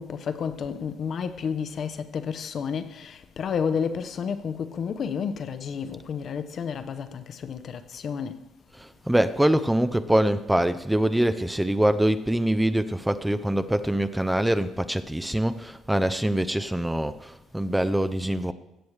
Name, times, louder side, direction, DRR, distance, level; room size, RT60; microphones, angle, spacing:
voice 1, 0.0-8.4, left 6 dB, 55° left, 0.6 m, -31 dB
voice 2, 8.7-18.5, right 1 dB, 5° right, 0.4 m, -24 dB
15.5 x 6.4 x 3.2 m
cardioid pair, 95°, 0 cm